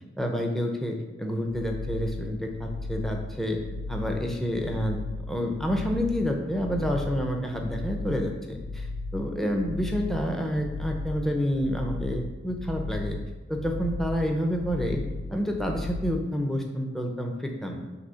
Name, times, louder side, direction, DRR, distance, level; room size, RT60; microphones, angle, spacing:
voice 1, 0.2-3.6 3.9-5.0 5.3-8.9 9.1-13.2 13.5-15.0 15.3-17.8, equal, ahead, 1 dB, 0.6 m, -29 dB
sound 1, 1.5-16.2, left 3 dB, 75° left, 0.4 m, -36 dB
6.5 x 3.2 x 5.5 m, 1.2 s
head